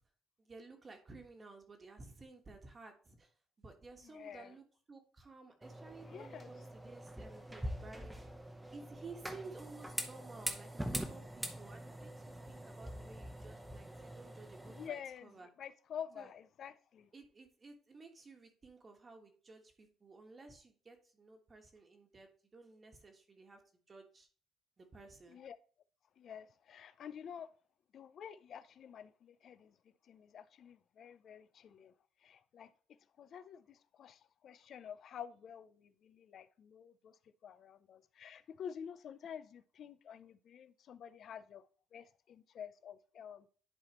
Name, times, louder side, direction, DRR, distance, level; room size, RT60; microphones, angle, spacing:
voice 1, 0.4-3.3 3.6-8.3 8.7-15.5 16.2-16.3 17.1-23.6 23.9-24.3 24.8-25.4, right 3 dB, 30° right, 1.3 m, -54 dB
voice 2, 4.0-4.5 6.1-6.5 14.7-17.1 25.3-25.6 26.2-27.5 27.9-29.8 30.0-31.9 32.2-32.7 33.2-43.5, left 8 dB, 55° left, 0.4 m, -49 dB
sound 1, 5.6-14.9, right 1 dB, 10° right, 0.9 m, -44 dB
11.0 x 4.1 x 3.0 m
cardioid pair, 110°, 0 cm